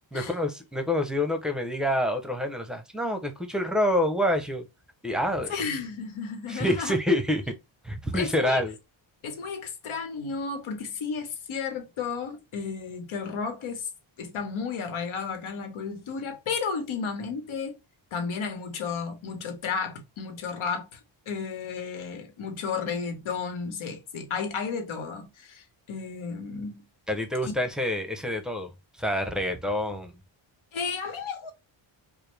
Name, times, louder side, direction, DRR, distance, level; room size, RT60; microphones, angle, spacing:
voice 1, 0.1-4.7 5.0-5.5 6.5-7.5 7.8-8.7 27.1-28.7 29.0-30.1, left 1 dB, ahead, 0.6 m, -27 dB
voice 2, 5.5-7.0 8.1-8.6 9.2-13.9 14.2-17.8 18.1-21.0 21.3-26.8 27.4-27.5 30.7-31.5, left 5 dB, 85° left, 1.1 m, -33 dB
4.9 x 2.0 x 3.3 m
wide cardioid pair, 145°, 48 cm